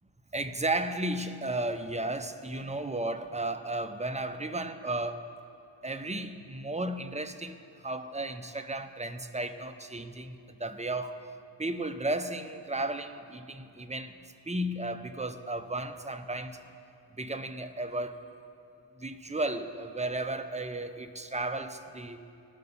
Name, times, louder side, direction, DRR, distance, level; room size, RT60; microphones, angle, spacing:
voice 1, 0.3-5.3 5.8-11.2 11.6-16.6 17.1-18.2 19.0-22.2, right 2 dB, 15° right, 8 dB, 0.6 m, -34 dB
19.0 x 6.8 x 5.4 m, 2.7 s
wide cardioid pair, 45°, 45 cm